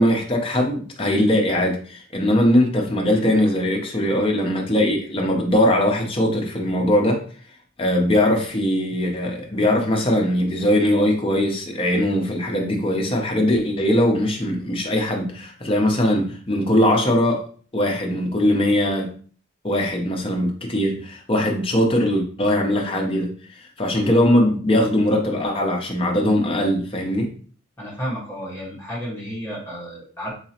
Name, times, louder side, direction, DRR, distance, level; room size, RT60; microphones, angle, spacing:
voice 1, 0.0-7.2 7.8-17.4 17.7-19.1 19.6-23.3 23.6-27.3, left 1 dB, 25° left, 1 dB, 0.7 m, -20 dB
voice 2, 27.8-30.3, equal, 10° left, -5 dB, 1.2 m, -32 dB
3.9 x 3.0 x 2.8 m, 0.44 s
head